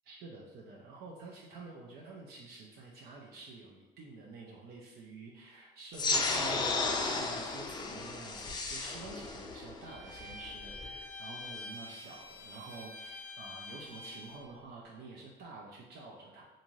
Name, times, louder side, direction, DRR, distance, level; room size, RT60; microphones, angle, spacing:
voice 1, 0.1-16.4, right 3 dB, 70° right, -3 dB, 0.5 m, -49 dB
sound 1, 5.9-10.9, left 3 dB, 25° left, 0.4 m, -34 dB
Bowed string instrument, 9.8-14.5, left 2 dB, 80° left, 0.5 m, -46 dB
2.5 x 2.5 x 3.0 m, 1.1 s
cardioid pair, 110°, 17 cm